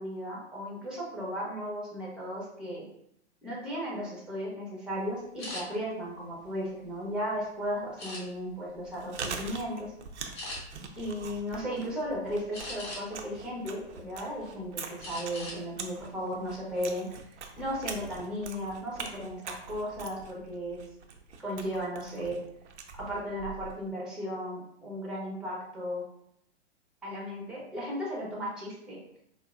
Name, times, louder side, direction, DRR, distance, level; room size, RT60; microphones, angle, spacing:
voice 1, 0.0-2.8 3.4-9.9 11.0-17.1 17.5-20.8 21.4-22.4 23.0-26.0 27.0-29.0, equal, ahead, -5 dB, 0.9 m, -35 dB
sound 1, 5.4-5.6 6.3-7.3 8.0-8.6 9.1-9.3 9.7-9.8 10.3-10.6 12.5-13.2 13.7-14.5 15.0-15.6 16.0-16.1 16.6-16.9, left 2 dB, 35° left, 1.3 m, -41 dB
Chewing mastication, 8.7-23.8, right 5 dB, 80° right, 0.6 m, -43 dB
4.4 x 2.0 x 2.4 m, 0.74 s
hypercardioid pair, 115°, 34 cm